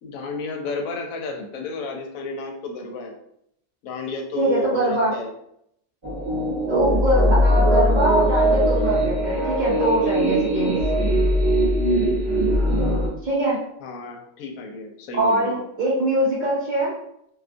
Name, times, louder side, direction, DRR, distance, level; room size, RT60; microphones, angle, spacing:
voice 1, 0.0-3.1 3.8-5.3 13.8-15.6, left 3 dB, 85° left, 2 dB, 1.0 m, -32 dB
voice 2, 4.4-5.1 6.7-10.8 13.2-13.6 15.1-16.9, right 1 dB, 65° right, -6 dB, 0.4 m, -22 dB
sound 1, 6.0-13.1, equal, 25° right, 0.8 m, -20 dB
2.4 x 2.3 x 2.5 m, 0.74 s
omnidirectional pair, 1.4 m